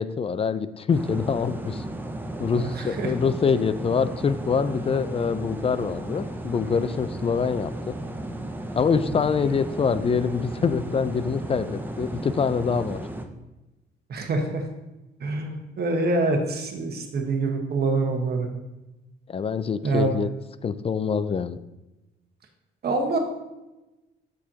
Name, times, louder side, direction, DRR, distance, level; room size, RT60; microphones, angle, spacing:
voice 1, 0.0-1.8 2.4-8.0 8.8-13.0 19.3-20.3 20.6-21.6, left 6 dB, 30° left, 14 dB, 0.3 m, -25 dB
sound 1, 0.9-13.3, right 1 dB, 10° right, 0.6 m, -34 dB
voice 2, 2.5-3.1 9.0-9.2 14.1-14.6 15.2-18.5 19.8-20.1 22.8-23.2, right 3 dB, 55° right, 3 dB, 1.3 m, -26 dB
7.3 x 6.3 x 2.9 m, 1.0 s
cardioid pair, 90°, 20 cm